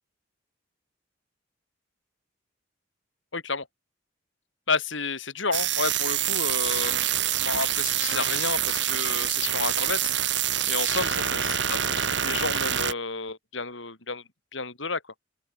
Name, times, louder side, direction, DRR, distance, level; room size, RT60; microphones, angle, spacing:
voice 1, 3.3-3.7 4.7-10.1 10.7-14.2 14.5-15.0, left 4 dB, 70° left, 5.3 m, -31 dB
sound 1, 5.5-12.9, right 11 dB, 60° right, 3.5 m, -26 dB
open air
head